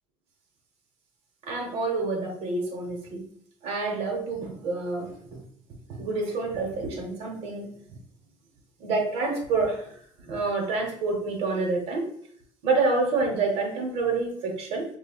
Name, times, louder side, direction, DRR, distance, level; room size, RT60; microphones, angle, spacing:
voice 1, 1.4-3.2 3.6-5.4 6.0-7.7 8.8-10.0 10.2-12.1 12.6-14.9, right 3 dB, 70° right, 1 dB, 0.9 m, -28 dB
5.1 x 2.2 x 2.3 m, 0.63 s
cardioid pair, 135°, 11 cm